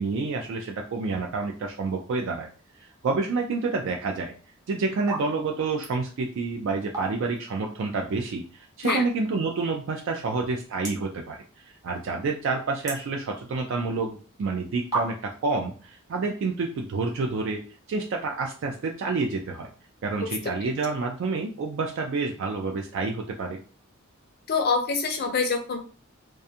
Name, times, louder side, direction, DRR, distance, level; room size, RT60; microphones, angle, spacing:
voice 1, 0.0-2.5 2.8-4.3 4.7-17.6 17.9-19.7 20.0-23.6, right 3 dB, 60° right, 2 dB, 0.3 m, -28 dB
sound 1, 5.1-5.3 5.6-6.0 6.7-7.4 7.8-7.9 8.8-9.3 9.9-10.0 10.2-10.3 10.8-11.2 11.5-12.0 12.3-13.7 14.4-14.5 14.9-15.5, right 3 dB, 20° right, 0.7 m, -33 dB
voice 2, 24.5-25.9, left 4 dB, 50° left, 5 dB, 0.5 m, -25 dB
2.4 x 2.3 x 2.7 m, 0.40 s
head